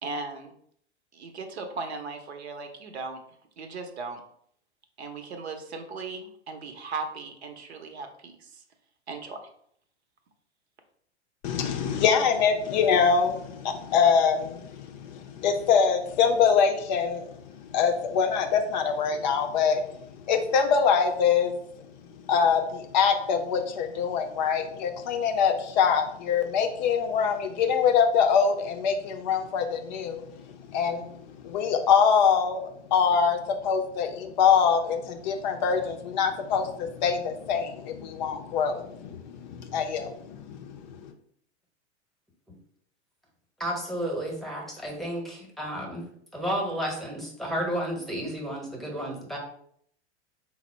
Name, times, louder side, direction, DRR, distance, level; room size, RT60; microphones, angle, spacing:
voice 1, 0.0-0.5 1.1-3.2 3.6-4.2 5.0-8.6 9.1-9.4, right 4 dB, 65° right, 6 dB, 0.8 m, -37 dB
voice 2, 11.4-17.3 17.6-19.8 20.3-21.6 22.3-30.2 30.7-31.1 31.4-41.1, left 6 dB, 40° left, 4 dB, 0.5 m, -24 dB
voice 3, 43.6-46.1 46.3-49.4, equal, ahead, -1 dB, 0.9 m, -32 dB
4.2 x 2.0 x 4.2 m, 0.66 s
figure-of-eight pair, 95°, 35 cm